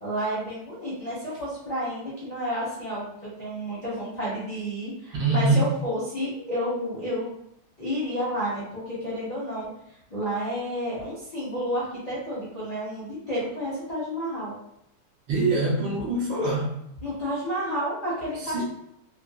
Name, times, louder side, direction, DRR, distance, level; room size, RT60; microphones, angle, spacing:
voice 1, 0.0-7.3 7.8-9.7 10.1-14.6 17.0-18.6, equal, 45° left, -10 dB, 0.5 m, -30 dB
voice 2, 5.2-5.6 15.3-16.8 18.4-18.6, right 3 dB, 65° right, -5 dB, 1.4 m, -24 dB
3.9 x 2.1 x 2.3 m, 0.77 s
omnidirectional pair, 2.4 m